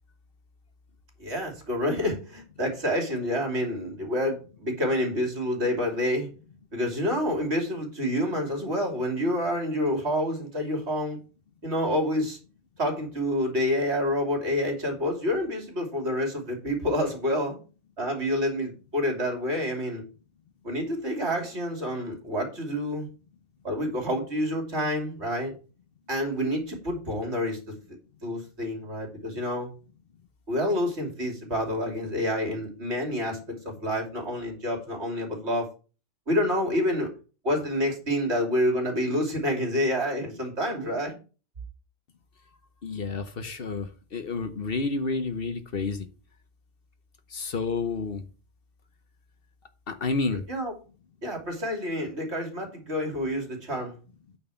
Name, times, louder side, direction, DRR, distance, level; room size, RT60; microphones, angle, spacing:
voice 1, 1.2-6.3 6.7-11.2 11.6-12.4 12.8-17.6 18.0-20.0 20.6-23.1 23.6-25.5 26.1-27.8 28.2-29.7 30.5-35.7 36.3-37.1 37.4-41.1 50.5-50.7 51.2-53.9, left 1 dB, 65° right, 3.1 m, -28 dB
voice 2, 42.8-46.1 47.3-48.2 49.9-50.4, left 4 dB, 55° left, 1.0 m, -30 dB
8.9 x 4.6 x 6.9 m
omnidirectional pair, 1.2 m